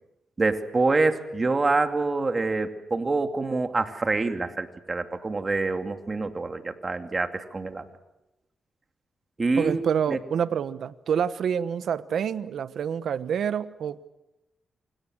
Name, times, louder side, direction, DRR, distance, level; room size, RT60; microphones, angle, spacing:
voice 1, 0.4-7.8 9.4-9.8 10.1-10.2, right 3 dB, 35° right, 7 dB, 2.6 m, -26 dB
voice 2, 9.6-14.1, right 8 dB, 75° right, 14 dB, 1.2 m, -27 dB
28.0 x 26.5 x 6.5 m, 0.93 s
cardioid pair, 80°, 0 cm